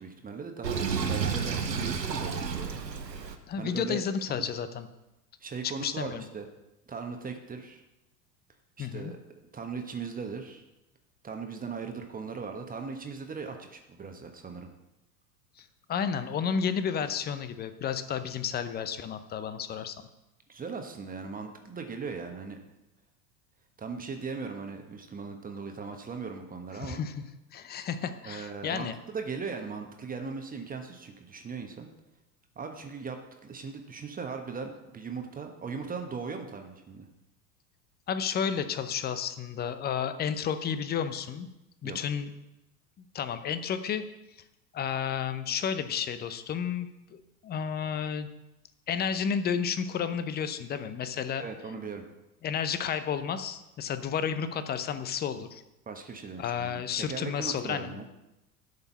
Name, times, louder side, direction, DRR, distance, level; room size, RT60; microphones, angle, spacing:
voice 1, 0.0-2.8 3.6-4.0 4.4-4.5 5.4-6.5 6.9-7.8 8.8-9.2 9.5-10.6 11.2-14.7 20.5-22.6 23.8-27.0 28.2-31.9 32.5-37.1 41.8-42.0 51.4-52.0 55.9-58.0, right 5 dB, 15° right, 4 dB, 1.2 m, -38 dB
Sink (filling or washing), 0.6-3.4, right 6 dB, 80° right, 1.1 m, -31 dB
voice 2, 3.5-4.9 5.8-6.2 8.8-9.1 15.6-19.9 26.8-27.2 27.5-28.9 38.1-41.5 41.8-42.3 43.1-44.1 44.7-48.3 48.9-51.4 52.4-55.6 56.4-57.9, left 7 dB, 20° left, 11 dB, 0.7 m, -32 dB
11.5 x 5.5 x 7.0 m, 0.94 s
figure-of-eight pair, 80°, 49 cm